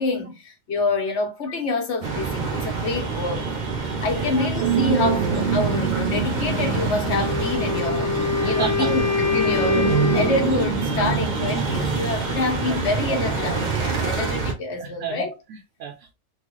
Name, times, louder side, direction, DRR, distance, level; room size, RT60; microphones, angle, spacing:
voice 1, 0.0-3.6 4.0-8.2 8.4-15.3, left 3 dB, 60° left, 1.2 m, -27 dB
sound 1, 2.0-14.5, right 4 dB, 45° right, 0.7 m, -27 dB
voice 2, 4.1-4.4 8.4-9.0 12.6-12.8 14.0-14.1 14.8-16.1, right 6 dB, 70° right, 0.9 m, -33 dB
sound 2, 4.6-12.1, right 7 dB, 90° right, 1.1 m, -26 dB
Wind instrument woodwind instrument, 7.0-10.6, left 5 dB, 80° left, 1.3 m, -25 dB
3.8 x 2.4 x 3.1 m
omnidirectional pair, 1.3 m